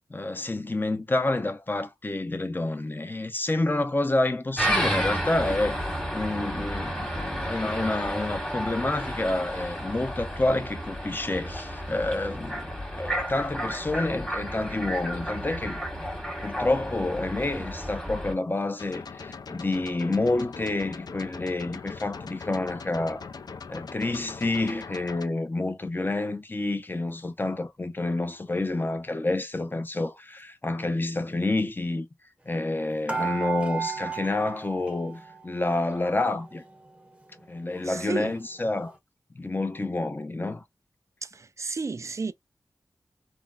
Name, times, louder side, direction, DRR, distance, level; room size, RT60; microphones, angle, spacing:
voice 1, 0.1-5.8 6.1-15.8 16.4-23.3 23.7-32.1 32.5-36.6 37.5-39.0 39.3-40.6, left 2 dB, 30° left, 0.6 m, -28 dB
sound 1, 4.6-18.3, equal, 10° left, 1.3 m, -32 dB
sound 2, 18.8-25.3, left 5 dB, 65° left, 0.4 m, -41 dB
sound 3, 33.1-35.6 35.9-36.9 37.4-37.5 37.7-37.9, right 6 dB, 15° right, 0.7 m, -34 dB
voice 2, 37.8-38.4 41.2-42.3, right 4 dB, 45° right, 0.4 m, -32 dB
3.7 x 2.1 x 2.3 m
wide cardioid pair, 55°, 7 cm